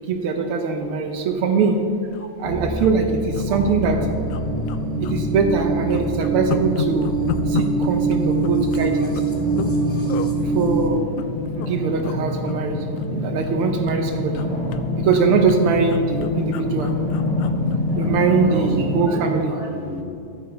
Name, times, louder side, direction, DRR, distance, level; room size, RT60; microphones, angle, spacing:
voice 1, 0.1-1.8 2.4-4.0 5.0-7.1 7.5-9.2 10.4-11.0 11.6-14.5 15.0-16.9 17.9-19.6, right 5 dB, 85° right, 4 dB, 1.2 m, -22 dB
sound 1, 1.3-1.5 1.8-1.9 2.1-2.3 2.8-3.5 3.8-3.9 4.3-5.2 5.5-9.8 10.1-10.3 10.9-11.7 12.0-12.2 12.5-13.6 13.9-18.4 18.8-18.9, left 11 dB, 80° left, 1.9 m, -33 dB
sound 2, 2.4-10.9, right 4 dB, 15° left, 0.5 m, -25 dB
sound 3, 3.2-19.1, left 2 dB, 45° left, 3.0 m, -27 dB
voice 2, 18.4-18.7 19.0-20.0, equal, 30° right, -3 dB, 2.1 m, -34 dB
13.5 x 8.8 x 4.4 m, 2.6 s
omnidirectional pair, 3.4 m